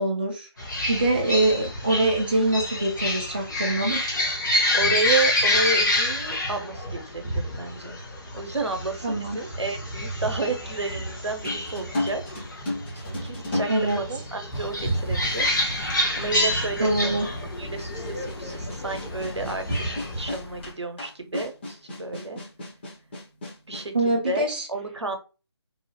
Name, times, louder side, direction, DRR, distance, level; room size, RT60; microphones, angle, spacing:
voice 1, 0.0-4.0 9.0-9.4 13.7-14.0 16.8-17.3 23.9-24.7, right 2 dB, 20° right, 0.3 m, -24 dB
sound 1, 0.6-20.3, left 1 dB, 45° left, 1.0 m, -28 dB
voice 2, 4.7-8.0 8.3-12.2 12.9-15.5 16.2-17.3 17.6-22.4 23.7-25.2, right 3 dB, 80° right, 0.7 m, -31 dB
sound 2, 11.4-14.6 15.5-15.6 17.8-23.9, left 2 dB, 25° left, 0.7 m, -34 dB
sound 3, 14.5-20.7, left 2 dB, 60° left, 0.6 m, -41 dB
2.7 x 2.0 x 2.7 m
figure-of-eight pair, 155°, 14 cm